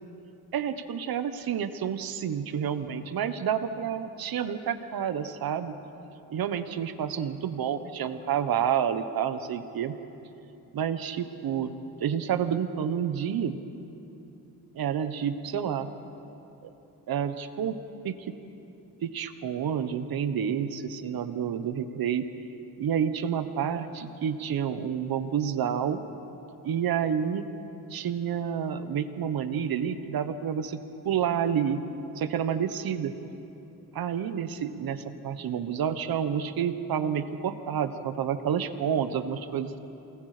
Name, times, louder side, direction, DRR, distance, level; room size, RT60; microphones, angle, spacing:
voice 1, 0.5-5.7 6.3-9.9 10.7-11.7 12.0-13.6 14.7-15.9 16.6-16.7 17.1-17.8 18.0-18.3 19.0-22.2 22.8-26.0 26.6-27.5 27.9-30.8 31.0-31.8 32.1-33.1 33.9-39.8, right 8 dB, 70° right, 10 dB, 1.2 m, -29 dB
28.0 x 20.0 x 5.1 m, 2.9 s
cardioid pair, 90°, 37 cm